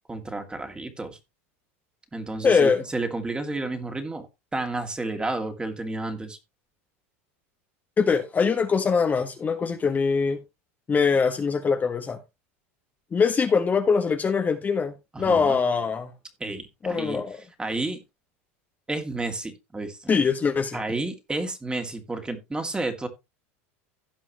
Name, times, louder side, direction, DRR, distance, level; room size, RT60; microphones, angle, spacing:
voice 1, 0.1-1.2 2.1-4.3 4.5-6.4 15.1-15.6 16.4-17.2 17.6-18.0 18.9-20.1 20.7-23.1, right 2 dB, 15° right, 2.5 m, -31 dB
voice 2, 2.4-2.8 8.0-10.4 10.9-12.2 13.1-16.1 16.8-17.4 20.1-20.8, left 5 dB, 25° left, 1.4 m, -23 dB
16.5 x 5.6 x 3.0 m
hypercardioid pair, 100°, 7 cm